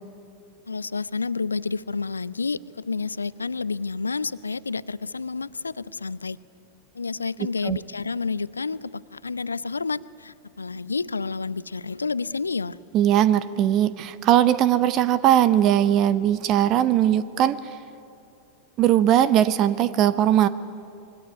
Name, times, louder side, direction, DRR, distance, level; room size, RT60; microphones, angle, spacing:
voice 1, 0.7-6.4 6.9-12.8, left 4 dB, 75° left, 19 dB, 0.6 m, -30 dB
voice 2, 12.9-17.6 18.8-20.5, right 11 dB, 35° right, 16 dB, 0.9 m, -19 dB
26.5 x 22.5 x 9.4 m, 2.6 s
figure-of-eight pair, 90°, 0 cm